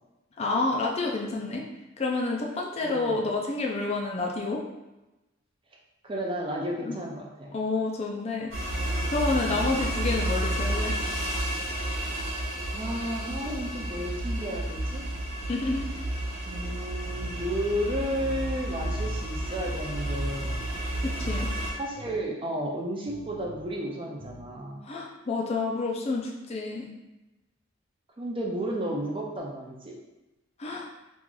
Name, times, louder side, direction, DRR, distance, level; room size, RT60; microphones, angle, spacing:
voice 1, 0.4-1.6 2.0-4.6 6.9-7.0 7.5-8.5 9.1-11.0 15.5-15.9 21.0-21.5 24.8-26.9 30.6-30.9, left 3 dB, 30° left, -1 dB, 0.5 m, -29 dB
voice 2, 2.8-3.2 6.0-7.5 9.5-9.7 12.7-15.0 16.5-20.6 21.8-24.8 28.2-30.0, right 1 dB, 25° right, -2 dB, 0.5 m, -33 dB
sound 1, 8.5-21.7, right 1 dB, 85° right, 1.0 m, -31 dB
sound 2, 16.6-24.6, equal, 50° right, 1.1 m, -48 dB
3.0 x 2.5 x 3.7 m, 1.0 s
head